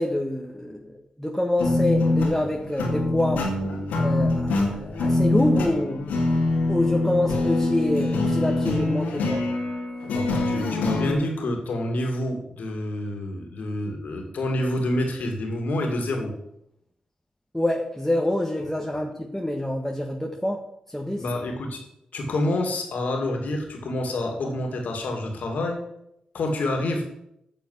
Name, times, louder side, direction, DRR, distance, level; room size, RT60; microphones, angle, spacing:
voice 1, 0.0-3.4 4.0-6.1 6.7-9.4 17.5-20.6 20.9-21.2, left 1 dB, 5° left, 0 dB, 1.5 m, -26 dB
sound 1, 1.6-11.1, left 2 dB, 90° left, 2.2 m, -24 dB
voice 2, 10.1-16.3 21.2-21.8 22.1-25.8 26.3-27.1, left 1 dB, 70° left, 2 dB, 2.6 m, -28 dB
8.4 x 6.3 x 8.3 m, 0.79 s
supercardioid pair, 40°, 3 cm